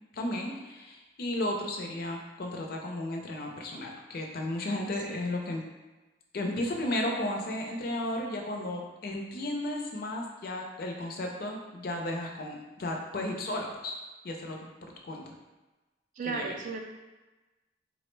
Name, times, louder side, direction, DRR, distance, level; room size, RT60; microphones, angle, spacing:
voice 1, 0.1-5.6 6.3-14.0 14.2-14.7 15.0-15.3 16.2-16.5, left 1 dB, 55° left, 1 dB, 0.5 m, -34 dB
voice 2, 4.8-5.2 16.2-16.8, right 4 dB, 45° right, 3 dB, 0.3 m, -35 dB
3.6 x 2.0 x 3.1 m, 1.1 s
head